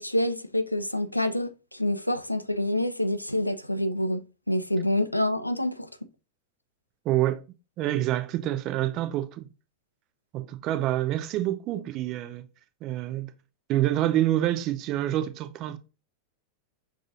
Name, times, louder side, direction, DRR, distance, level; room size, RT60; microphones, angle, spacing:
voice 1, 0.0-5.9, left 1 dB, 90° left, 0.3 m, -27 dB
voice 2, 7.0-7.4 7.8-9.5 10.3-12.4 12.8-13.3 13.7-15.8, right 13 dB, 40° right, 0.5 m, -27 dB
6.2 x 2.4 x 2.6 m
figure-of-eight pair, 90°, 0 cm